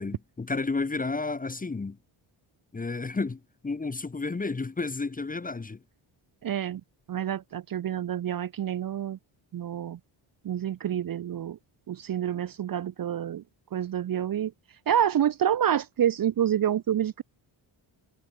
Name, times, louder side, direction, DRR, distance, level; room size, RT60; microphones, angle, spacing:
voice 1, 0.0-2.0 2.7-5.8, left 3 dB, 15° left, 0.8 m, -31 dB
voice 2, 6.4-6.8 7.1-9.2 9.5-10.0 10.4-11.6 11.9-13.4 13.7-14.5 14.9-17.2, right 10 dB, 45° right, 0.6 m, -28 dB
wide cardioid pair, 145°, 50 cm